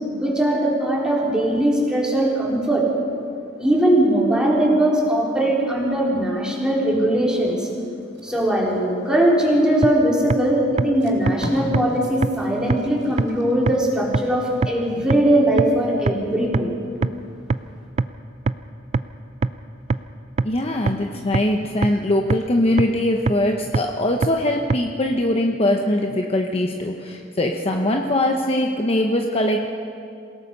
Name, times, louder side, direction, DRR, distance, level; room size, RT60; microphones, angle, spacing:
voice 1, 0.2-2.8 3.6-7.7 8.2-16.7, right 1 dB, 5° right, -4 dB, 3.9 m, -20 dB
Packing tape duct tape, 8.0-9.7 10.4-10.5 10.8-13.8 14.2-14.4, equal, 70° right, 4.2 m, -37 dB
sound 1, 9.8-9.9 10.3-10.4 10.8-10.9 11.3-11.4 11.7-11.8 12.2-12.3 12.7-12.8 13.2-13.3 13.7-13.8 14.1-14.2 14.6-14.7 15.1-15.2 15.6-15.7 16.1-16.2 16.5-16.6 17.0-17.1 17.5-17.6 18.0-18.1 18.5-18.6 18.9-19.0 19.4-19.5 19.9-20.0 20.4-20.5 20.9-21.0 21.3-21.4 21.8-21.9 22.3-22.4 22.8-22.9 23.3-23.4 23.7-23.8 24.2-24.3 24.7-24.8, right 3 dB, 35° right, 0.4 m, -19 dB
voice 2, 20.4-29.7, left 1 dB, 30° left, 2 dB, 1.0 m, -21 dB
27.5 x 17.5 x 5.5 m, 2.4 s
head